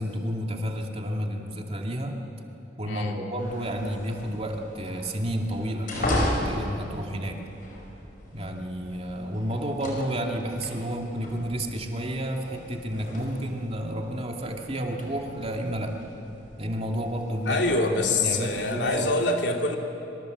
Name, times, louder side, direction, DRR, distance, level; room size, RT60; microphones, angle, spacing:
voice 1, 0.0-2.2 2.8-7.4 8.3-15.9 16.6-17.6 18.1-19.1, equal, 35° right, 2 dB, 2.4 m, -31 dB
voice 2, 2.8-3.2 17.5-19.8, left 2 dB, 70° left, 2 dB, 2.9 m, -25 dB
sound 1, 3.4-19.1, left 1 dB, 45° left, 5.5 m, -37 dB
26.0 x 24.5 x 8.0 m, 3.0 s
head